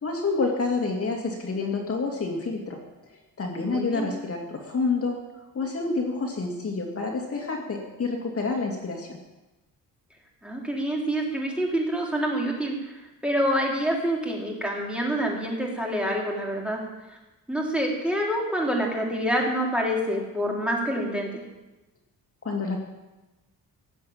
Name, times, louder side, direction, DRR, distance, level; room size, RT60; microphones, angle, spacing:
voice 1, 0.0-5.2 5.5-9.2 22.4-22.8, left 3 dB, 40° left, 1 dB, 2.3 m, -28 dB
voice 2, 3.6-4.1 10.4-16.8 17.1-17.2 17.5-21.4, equal, 5° right, -1 dB, 3.6 m, -27 dB
18.0 x 8.0 x 8.7 m, 1.1 s
cardioid pair, 120°, 36 cm